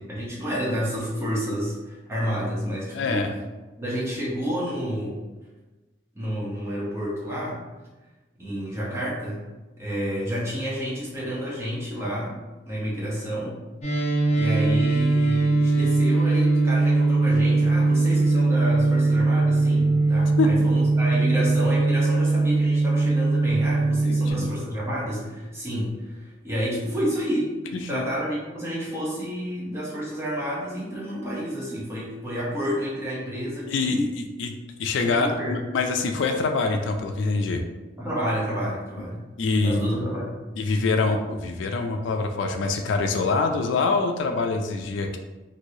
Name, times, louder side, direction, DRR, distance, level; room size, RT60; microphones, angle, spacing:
voice 1, 0.0-3.3 3.8-5.2 6.1-7.6 8.4-9.4 9.8-12.4 12.7-13.6 14.3-34.0 35.0-35.5 38.0-39.2 39.6-40.3, equal, 15° right, -6 dB, 0.7 m, -30 dB
voice 2, 2.9-3.3 20.4-20.7 24.0-24.5 27.7-28.0 33.7-37.6 39.4-40.0 40.6-45.2, left 3 dB, 75° left, 5 dB, 0.3 m, -25 dB
sound 1, 13.8-24.3, right 3 dB, 35° left, 0.7 m, -21 dB
3.1 x 2.6 x 2.7 m, 1.2 s
head